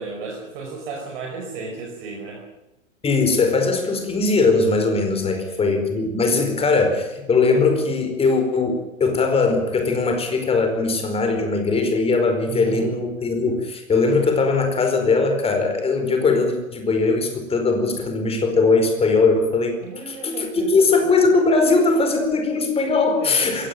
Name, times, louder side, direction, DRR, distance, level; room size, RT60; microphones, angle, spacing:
voice 1, 0.0-2.4 5.4-5.6 6.5-6.6 12.4-12.9 19.8-21.1 23.2-23.7, right 4 dB, 45° right, 1 dB, 5.3 m, -34 dB
voice 2, 3.0-19.8 20.1-23.7, left 3 dB, 15° left, 5 dB, 4.7 m, -20 dB
21.5 x 17.5 x 9.2 m, 0.99 s
figure-of-eight pair, 105°, 41 cm